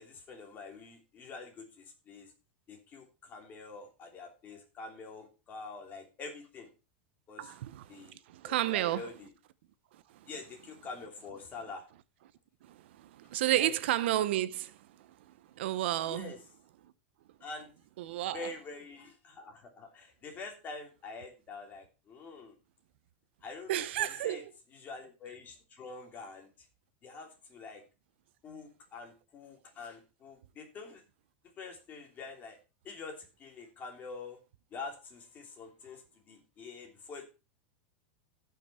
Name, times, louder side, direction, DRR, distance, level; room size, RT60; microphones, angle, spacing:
voice 1, 0.0-2.3 2.7-6.7 7.3-7.5 7.9-9.3 10.3-11.8 13.5-13.7 16.0-16.4 17.4-17.7 18.1-22.6 23.4-24.4 24.7-26.7 27.0-27.8 28.4-31.0 31.6-32.6 32.8-34.4 34.7-37.2, left 4 dB, 30° left, 3.1 m, -46 dB
voice 2, 7.4-9.0 9.9-10.3 12.6-15.1 15.6-16.3 18.0-18.5 23.7-24.5, right 13 dB, 75° right, 0.8 m, -32 dB
15.5 x 5.9 x 4.3 m
supercardioid pair, 140°, 6 cm